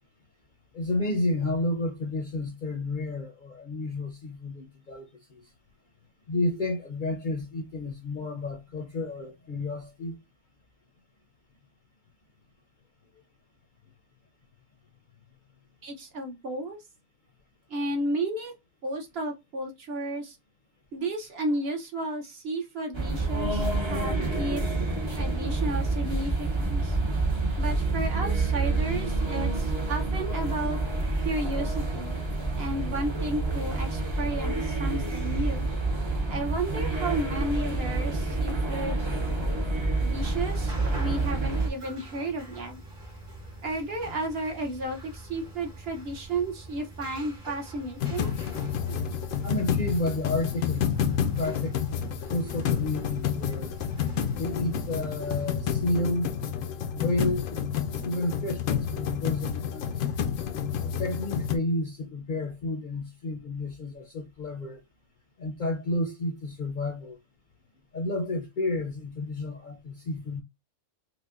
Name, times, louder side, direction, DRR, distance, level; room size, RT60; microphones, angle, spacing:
voice 1, 0.7-5.4 6.3-10.2 49.4-51.8 52.3-53.7 54.3-56.3 56.9-57.7 58.0-60.1 60.8-64.8 65.4-67.2 67.9-70.4, left 2 dB, 50° left, 0.6 m, -31 dB
voice 2, 15.8-16.8 17.7-18.5 18.8-20.4 20.9-24.6 25.2-27.0 27.6-30.8 31.2-32.2 32.6-35.7 36.3-39.0 40.0-42.8 43.6-48.3, right 1 dB, 55° right, 0.9 m, -33 dB
sound 1, 22.9-41.7, right 3 dB, 35° right, 0.5 m, -28 dB
sound 2, 40.1-55.6, right 2 dB, 90° right, 1.9 m, -45 dB
sound 3, 48.0-61.6, left 8 dB, 90° left, 1.0 m, -29 dB
5.0 x 2.1 x 2.4 m
omnidirectional pair, 1.3 m